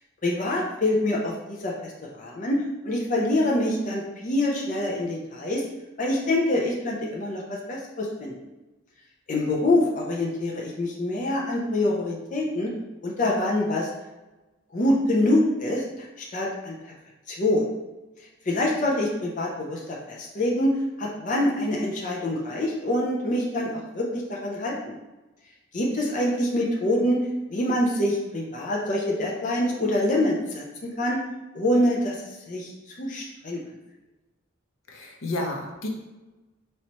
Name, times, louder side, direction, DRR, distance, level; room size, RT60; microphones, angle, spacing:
voice 1, 0.2-1.9 2.2-5.6 6.0-8.3 9.3-12.7 13.0-13.9 14.7-15.8 16.2-16.7 17.3-17.6 18.5-19.8 20.1-25.0 25.7-27.2 27.5-30.6 31.0-31.2 31.5-32.2 32.5-32.7 33.0-33.6, left 1 dB, 40° left, -3 dB, 0.6 m, -25 dB
voice 2, 34.9-35.9, left 1 dB, 80° left, 0 dB, 0.7 m, -31 dB
4.2 x 3.2 x 2.9 m, 1.1 s
head